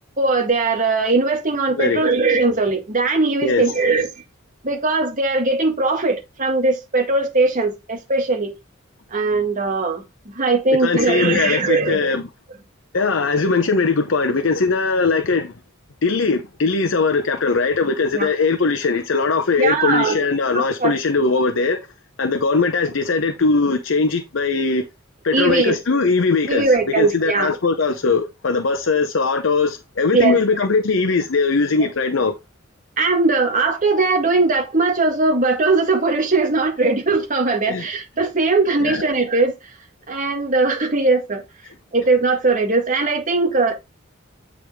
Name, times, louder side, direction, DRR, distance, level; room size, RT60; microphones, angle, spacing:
voice 1, 0.2-4.1 4.6-8.6 9.1-12.2 18.1-18.3 19.6-20.3 20.5-20.9 25.3-25.8 26.5-27.5 30.1-30.4 33.0-39.8 40.1-41.4 41.9-43.7, right 3 dB, 40° right, 1.8 m, -19 dB
voice 2, 1.7-2.0 3.4-3.7 10.8-12.2 12.9-15.5 16.0-21.8 22.2-24.8 25.2-32.4 37.6-37.9 38.8-39.0, left 4 dB, 70° left, 0.8 m, -20 dB
8.9 x 4.8 x 3.6 m
head